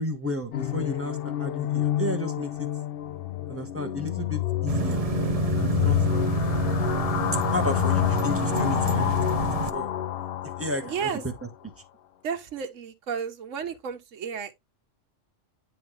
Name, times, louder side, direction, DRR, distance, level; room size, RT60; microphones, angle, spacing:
voice 1, 0.0-2.7 3.5-5.1 5.6-6.2 7.5-9.9 10.6-11.1, left 1 dB, 10° right, 1.1 m, -33 dB
sound 1, 0.5-11.3, left 12 dB, 60° left, 0.6 m, -28 dB
sound 2, 4.7-9.7, right 5 dB, 35° right, 0.7 m, -28 dB
voice 2, 10.8-11.2 12.2-14.5, right 7 dB, 80° right, 1.3 m, -32 dB
10.0 x 3.7 x 3.2 m
omnidirectional pair, 1.3 m